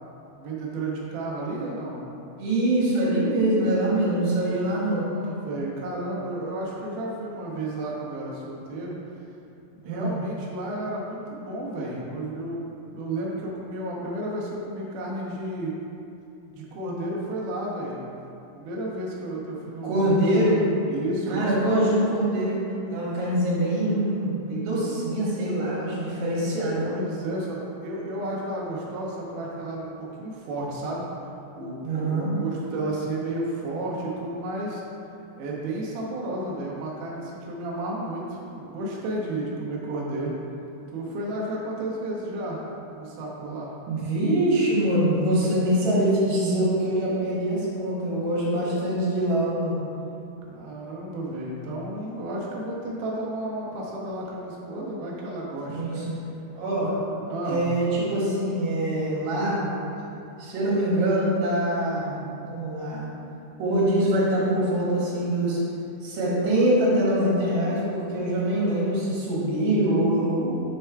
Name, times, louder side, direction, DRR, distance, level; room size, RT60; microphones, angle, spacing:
voice 1, 0.4-2.0 4.5-9.0 9.8-15.7 16.5-18.0 18.5-20.2 20.9-21.7 26.8-31.1 31.5-34.8 35.4-40.3 40.9-42.6 42.9-43.7 50.5-56.1 56.8-57.6, right 1 dB, 85° right, -4 dB, 1.8 m, -32 dB
voice 2, 2.4-5.1 9.8-10.2 19.8-20.6 21.3-22.6 22.9-26.9 31.8-32.3 43.9-49.8 55.7-56.2 56.5-56.9 57.4-59.6 60.4-63.1 63.6-65.6 66.0-70.6, right 1 dB, 65° right, -7 dB, 2.8 m, -24 dB
6.7 x 3.4 x 4.5 m, 2.7 s
omnidirectional pair, 4.7 m